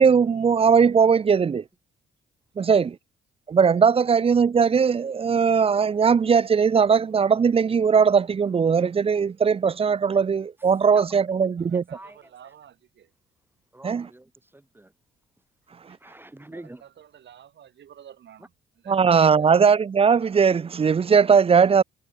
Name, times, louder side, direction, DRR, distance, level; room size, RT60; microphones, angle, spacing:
voice 1, 0.0-1.6 2.6-3.0 3.5-11.8 13.8-14.1 15.9-16.0 18.9-21.8, right 6 dB, 30° right, 0.5 m, -19 dB
voice 2, 11.5-13.1 16.4-19.0 19.3-19.5, right 10 dB, 65° right, 4.4 m, -51 dB
voice 3, 13.7-14.9 15.9-16.8, right 1 dB, 10° right, 1.9 m, -45 dB
cardioid pair, 90°, 20 cm